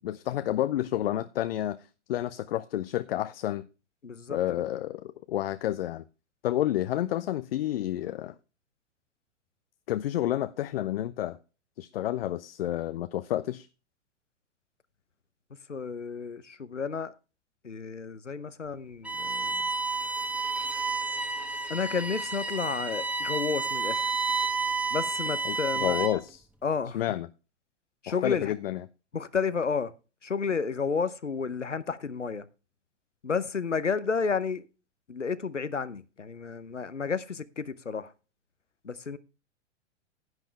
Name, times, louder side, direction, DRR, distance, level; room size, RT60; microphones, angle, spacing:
voice 1, 0.0-3.7 4.3-6.0 6.4-8.3 9.9-11.4 11.8-13.7 25.4-26.4 26.9-27.3 28.1-28.8, left 13 dB, 55° left, 0.6 m, -30 dB
voice 2, 4.0-4.6 15.7-17.1 17.6-19.6 21.7-24.1 24.9-26.1 26.6-27.0 28.0-28.5 29.1-29.9 30.2-32.4 33.2-34.7 35.1-38.1 38.8-39.2, left 5 dB, 90° left, 0.8 m, -31 dB
Bowed string instrument, 19.0-26.3, right 4 dB, 5° right, 1.2 m, -30 dB
10.5 x 8.9 x 3.3 m
figure-of-eight pair, 100°, 35 cm